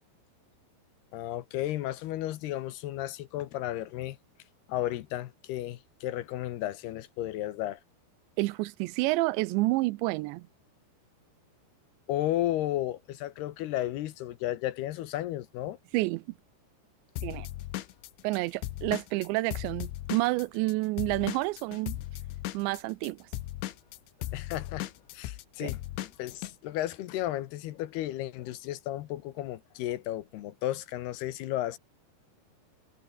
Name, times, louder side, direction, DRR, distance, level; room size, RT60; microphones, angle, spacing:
voice 1, 1.1-4.2 4.7-7.8 12.1-15.8 24.3-24.9 25.1-31.8, left 14 dB, 75° left, 2.9 m, -33 dB
voice 2, 8.4-10.5 15.9-16.2 17.2-17.5 18.2-22.0 22.5-23.3 25.6-25.7, right 21 dB, 90° right, 2.9 m, -29 dB
Drum kit / Drum, 17.2-20.7 21.0-26.5, left 15 dB, 90° left, 3.7 m, -37 dB
omnidirectional pair, 5.1 m